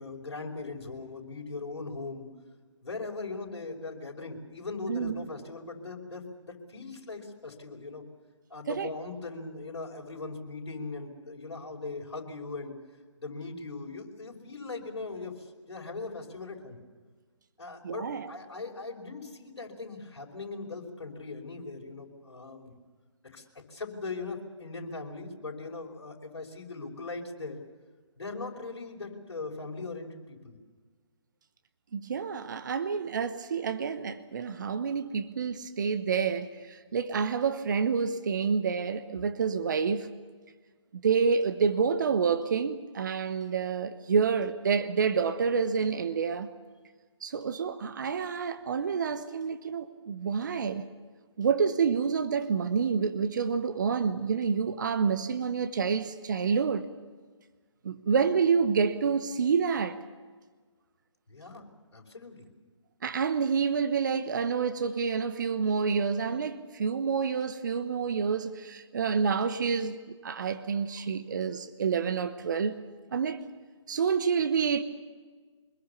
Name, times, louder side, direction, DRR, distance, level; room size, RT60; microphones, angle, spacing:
voice 1, 0.0-2.3 2.8-8.0 8.5-12.7 13.2-16.8 17.6-22.7 23.2-27.6 28.2-30.6 61.3-61.7 61.9-62.5, left 3 dB, 60° left, 5.3 m, -40 dB
voice 2, 4.9-5.2 8.7-8.9 17.8-18.3 31.9-40.1 41.0-46.5 47.2-50.9 51.4-56.9 57.8-60.0 63.0-72.8 73.1-73.4 73.9-74.8, right 6 dB, 40° right, 1.2 m, -28 dB
25.0 x 22.0 x 7.1 m
figure-of-eight pair, 145°, 16 cm